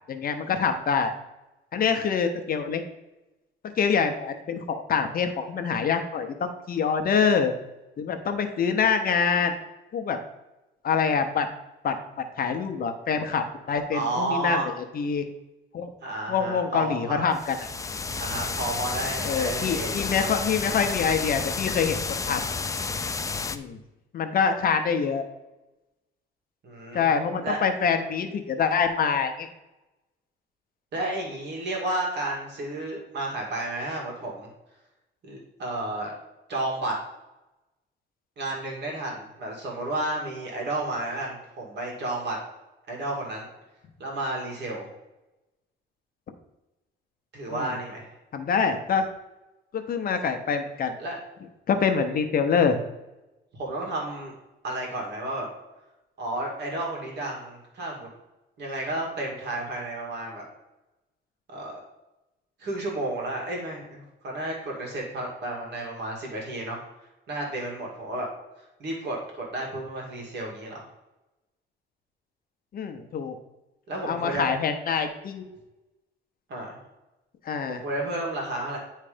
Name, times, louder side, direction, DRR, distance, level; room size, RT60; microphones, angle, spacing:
voice 1, 0.1-1.1 1.7-2.8 3.8-7.5 8.0-9.5 9.9-10.2 10.8-11.5 11.8-12.0 12.4-14.6 14.9-15.2 15.7-15.9 16.3-17.7 19.2-22.4 23.5-23.8 24.1-25.3 26.9-29.5 47.5-47.8 48.3-49.1 49.7-50.9 51.7-52.8 72.7-73.4 74.0-75.5 77.4-77.8, left 6 dB, 50° left, 6 dB, 0.8 m, -25 dB
voice 2, 13.9-14.7 16.0-17.3 18.1-20.1 26.6-27.1 27.4-27.6 30.9-34.5 35.2-36.1 36.5-37.0 38.4-42.4 42.9-43.5 44.0-44.9 47.3-48.1 51.0-51.2 53.6-54.3 54.6-55.5 56.2-58.1 58.6-60.4 61.5-61.8 62.6-66.8 67.3-68.3 68.8-70.8 73.9-74.4 76.5-76.8 77.7-78.8, right 2 dB, 60° right, -2 dB, 2.2 m, -32 dB
sound 1, 17.3-23.6, left 4 dB, 15° left, 0.3 m, -31 dB
9.7 x 3.3 x 5.0 m, 0.99 s
cardioid pair, 145°, 20 cm